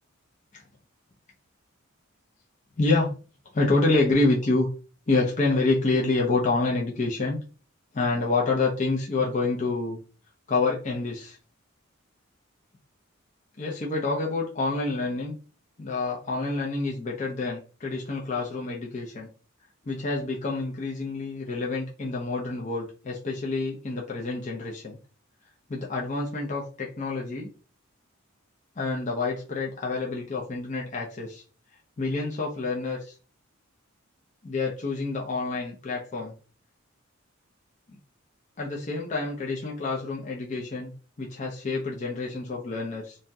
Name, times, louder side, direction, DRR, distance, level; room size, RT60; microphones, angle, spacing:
voice 1, 2.8-3.1 3.5-4.7 5.1-7.4 7.9-10.0 10.5-11.4 13.6-15.4 15.8-19.3 19.8-25.0 25.7-27.5 28.8-31.4 32.0-33.1 34.4-36.3 37.9-38.0 38.6-40.9 41.2-43.2, left 3 dB, 35° left, -2 dB, 0.5 m, -27 dB
2.6 x 2.0 x 3.4 m, 0.37 s
head